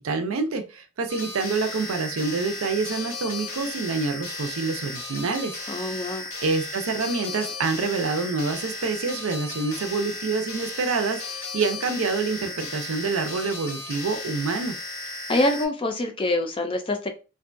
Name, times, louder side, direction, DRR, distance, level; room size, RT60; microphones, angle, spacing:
voice 1, 0.0-5.5 6.4-14.8, right 4 dB, 80° right, 7 dB, 0.5 m, -27 dB
sound 1, 1.1-15.7, left 3 dB, 75° left, 0.9 m, -35 dB
voice 2, 5.7-6.3 15.3-17.1, left 1 dB, 25° left, 5 dB, 0.4 m, -25 dB
2.6 x 2.2 x 2.5 m, 0.31 s
head